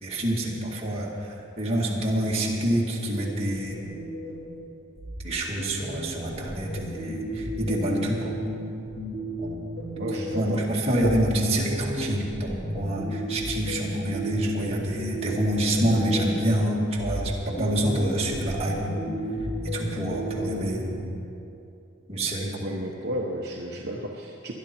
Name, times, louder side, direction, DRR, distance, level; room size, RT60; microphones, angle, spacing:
voice 1, 0.0-3.8 5.2-8.3 9.4-9.6 10.1-18.8 19.7-21.2 22.1-22.6, right 1 dB, 30° right, -4 dB, 2.0 m, -27 dB
sound 1, 3.0-4.6 5.0-10.6 11.0-16.6 17.0-20.9, equal, 55° left, 3.8 m, -33 dB
voice 2, 10.0-10.6 22.6-24.5, right 1 dB, 50° right, -2 dB, 1.0 m, -33 dB
21.0 x 11.5 x 4.5 m, 2.7 s
head